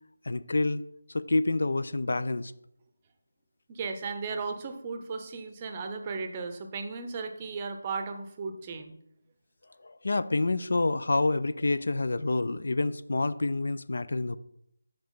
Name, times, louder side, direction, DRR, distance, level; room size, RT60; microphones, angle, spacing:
voice 1, 0.2-0.8 1.1-2.5 9.8-14.4, left 2 dB, 60° left, 14 dB, 0.3 m, -28 dB
voice 2, 3.7-8.9, right 4 dB, 25° right, 6 dB, 0.6 m, -35 dB
5.8 x 5.0 x 3.8 m, 0.74 s
figure-of-eight pair, 165°, 0 cm